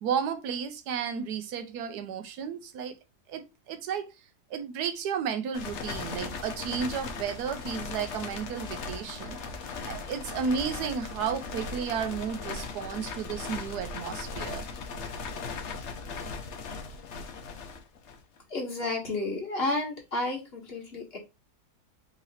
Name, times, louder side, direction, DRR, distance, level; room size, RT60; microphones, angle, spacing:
voice 1, 0.0-3.0 3.3-4.1 4.5-9.4 9.9-14.6, right 7 dB, 80° right, 1.2 m, -33 dB
sound 1, 5.5-18.4, left 4 dB, 55° left, 0.9 m, -38 dB
voice 2, 18.5-21.2, left 2 dB, 40° left, 1.5 m, -31 dB
3.7 x 3.1 x 4.1 m
omnidirectional pair, 1.7 m